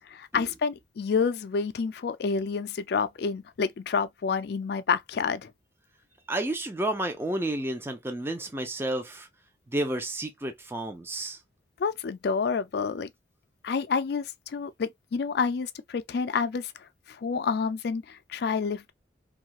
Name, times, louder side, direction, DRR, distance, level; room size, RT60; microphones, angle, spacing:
voice 1, 0.0-5.5 11.8-13.1 13.6-18.9, left 5 dB, 55° left, 0.4 m, -29 dB
voice 2, 6.3-9.3 9.7-11.4, right 1 dB, 10° right, 0.4 m, -31 dB
2.7 x 2.4 x 2.8 m
head